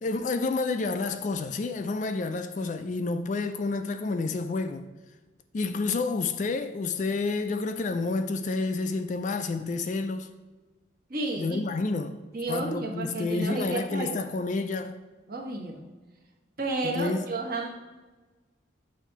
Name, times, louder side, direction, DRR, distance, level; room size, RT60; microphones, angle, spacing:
voice 1, 0.0-4.9 5.5-10.3 11.4-12.2 12.5-15.0 16.8-17.3, left 3 dB, 40° left, 0.3 m, -29 dB
voice 2, 11.1-11.6 12.3-14.2 15.3-15.8 16.6-17.7, right 2 dB, 50° right, 1.1 m, -31 dB
7.2 x 2.7 x 5.7 m
head